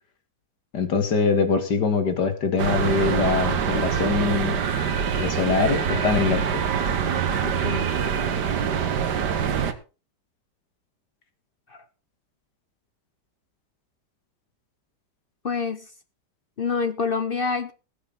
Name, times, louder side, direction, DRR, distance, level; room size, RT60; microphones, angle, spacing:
voice 1, 0.7-4.6 5.2-6.6, left 5 dB, 75° left, 8 dB, 2.6 m, -23 dB
sound 1, 2.6-9.7, right 7 dB, 80° right, 1.8 m, -24 dB
voice 2, 7.4-7.9 11.7-11.8 15.4-15.9 16.6-17.7, left 5 dB, 45° left, 11 dB, 0.8 m, -27 dB
20.5 x 8.3 x 4.0 m, 0.34 s
omnidirectional pair, 1.8 m